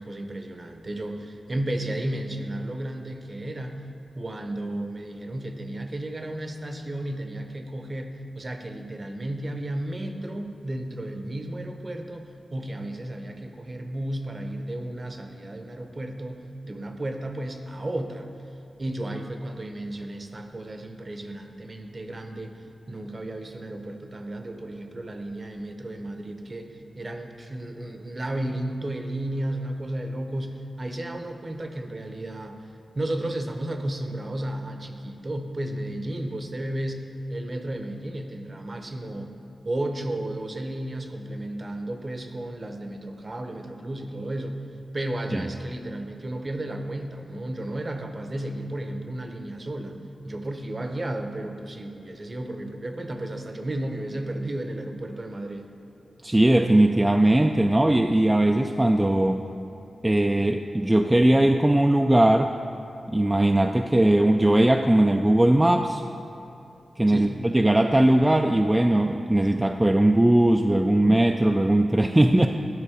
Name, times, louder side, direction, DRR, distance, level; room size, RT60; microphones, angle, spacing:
voice 1, 0.0-3.8 4.2-18.3 18.8-22.6 22.9-39.4 39.6-44.6 44.9-50.0 50.2-55.7 67.1-67.5, right 1 dB, 40° right, 5 dB, 0.7 m, -33 dB
voice 2, 56.2-59.4 60.0-62.5 63.1-66.0 67.0-72.5, right 1 dB, 15° right, 4 dB, 0.3 m, -19 dB
10.5 x 3.9 x 4.9 m, 2.8 s
cardioid pair, 65°, 0 cm